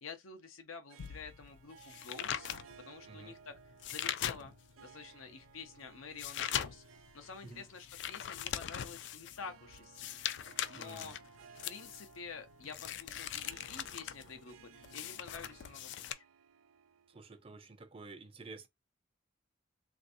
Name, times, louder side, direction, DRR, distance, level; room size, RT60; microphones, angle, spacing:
voice 1, 0.0-2.5 2.8-3.5 3.9-4.5 4.8-6.8 7.1-10.2 10.7-11.2 11.7-16.2, left 5 dB, 90° left, 0.7 m, -49 dB
Harp, 0.9-17.6, right 6 dB, 85° right, 0.5 m, -59 dB
sound 1, 1.0-4.8 5.3-16.1, left 10 dB, 60° left, 0.3 m, -41 dB
voice 2, 3.0-3.4 7.4-7.7 10.7-11.2 17.1-18.7, right 3 dB, 30° right, 0.5 m, -50 dB
3.3 x 2.6 x 2.6 m
head